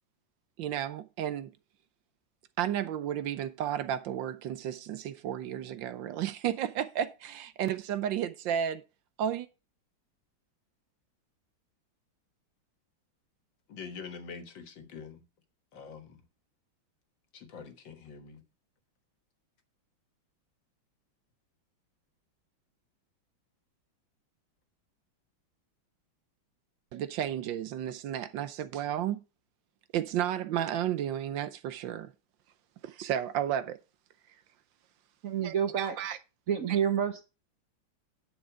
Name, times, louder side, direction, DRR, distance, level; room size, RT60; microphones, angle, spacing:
voice 1, 0.6-1.5 2.6-8.8 9.2-9.5 26.9-29.2 29.9-32.1 32.8-33.8 35.4-36.2 36.7-36.8, right 10 dB, 75° right, 1.4 m, -32 dB
voice 2, 13.7-15.2 15.7-16.2 17.3-18.4, left 5 dB, 70° left, 2.1 m, -45 dB
voice 3, 35.2-35.9 36.5-37.2, right 8 dB, 50° right, 1.1 m, -28 dB
10.0 x 6.7 x 4.8 m
omnidirectional pair, 2.2 m